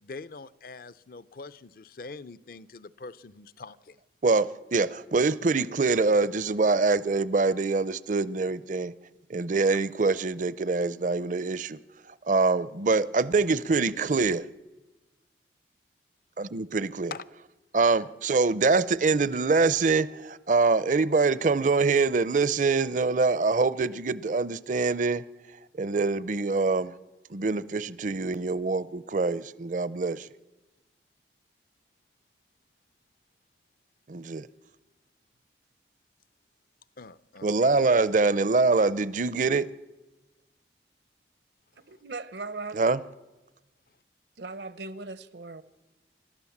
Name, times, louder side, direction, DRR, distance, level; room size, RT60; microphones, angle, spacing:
voice 1, 0.0-4.0 17.1-17.2 37.0-37.8, left 4 dB, 55° left, 0.6 m, -43 dB
voice 2, 4.2-8.9 9.3-11.8 12.3-14.5 16.4-17.1 17.7-25.2 25.8-26.9 27.3-30.3 34.1-34.5 37.4-39.7 42.7-43.0, right 3 dB, 45° right, 0.5 m, -24 dB
voice 3, 41.9-42.8 44.4-45.6, right 3 dB, 80° right, 1.0 m, -38 dB
28.5 x 12.5 x 7.2 m
head